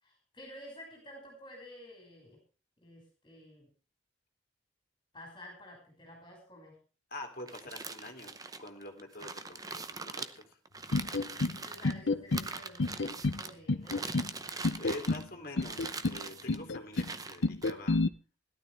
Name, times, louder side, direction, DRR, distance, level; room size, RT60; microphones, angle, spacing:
voice 1, 0.0-2.4 2.8-3.7 5.1-6.8 11.4-14.3, left 1 dB, 25° left, 0 dB, 5.7 m, -51 dB
voice 2, 7.1-10.6 14.8-18.0, left 1 dB, 45° left, 3 dB, 2.9 m, -46 dB
sound 1, 7.4-11.9 12.3-13.5 13.9-15.3 15.6-16.6 16.9-17.7, right 4 dB, 20° right, 0.7 m, -42 dB
sound 2, 10.9-11.6 11.8-12.5 12.8-13.4 13.7-14.3 14.6-15.2 15.6-16.2 16.5-17.1 17.4-18.1, left 3 dB, 65° left, 0.7 m, -30 dB
17.5 x 12.5 x 3.4 m, 0.36 s
head